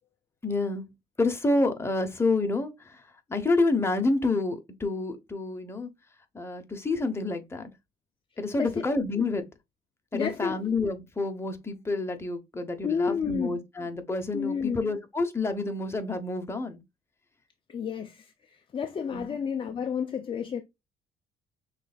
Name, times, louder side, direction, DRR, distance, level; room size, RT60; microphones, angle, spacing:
voice 1, 0.4-0.9 1.2-3.0 3.3-5.9 6.3-7.7 8.4-9.5 10.1-16.8 19.1-19.3, left 3 dB, 15° left, 1.0 m, -28 dB
voice 2, 10.1-10.6 12.8-13.6 14.3-14.8 17.7-20.6, left 6 dB, 30° left, 0.5 m, -31 dB
6.0 x 3.3 x 2.4 m
cardioid pair, 110°, 17 cm